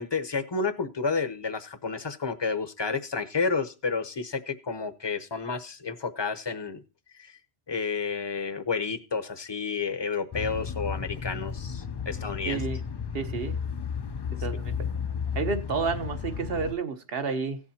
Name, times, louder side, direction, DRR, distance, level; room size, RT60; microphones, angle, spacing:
voice 1, 0.0-6.8 7.2-7.3 7.7-12.6, left 4 dB, 30° left, 0.7 m, -30 dB
sound 1, 10.3-16.7, left 7 dB, 45° left, 0.3 m, -33 dB
voice 2, 12.5-12.8 13.1-13.6 14.4-14.7 15.3-17.6, right 5 dB, 65° right, 1.2 m, -30 dB
17.5 x 7.3 x 2.8 m
omnidirectional pair, 1.1 m